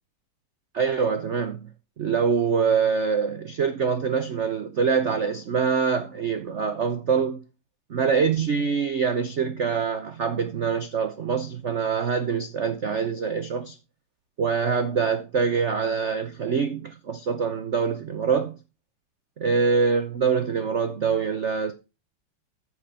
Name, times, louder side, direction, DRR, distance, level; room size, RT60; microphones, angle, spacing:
voice 1, 0.7-1.7 2.0-7.4 7.9-13.8 14.4-18.6 19.4-21.7, right 6 dB, 80° right, 0.6 m, -24 dB
14.5 x 5.0 x 4.9 m
omnidirectional pair, 2.4 m